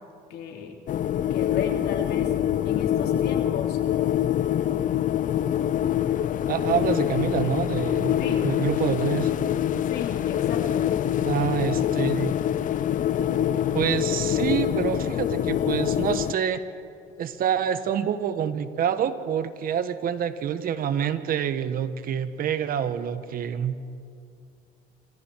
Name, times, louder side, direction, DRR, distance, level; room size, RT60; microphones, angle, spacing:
voice 1, 0.3-0.8 1.3-2.3 2.6-3.8 8.2-8.5 9.8-10.9, left 7 dB, 75° left, 2 dB, 3.2 m, -34 dB
sound 1, 0.9-16.3, left 11 dB, 50° left, 0.6 m, -25 dB
voice 2, 6.5-8.2 8.4-9.3 11.2-12.3 13.7-16.6 17.2-23.8, right 9 dB, 60° right, 11 dB, 1.5 m, -27 dB
28.0 x 26.0 x 4.8 m, 2.5 s
cardioid pair, 110°, 17 cm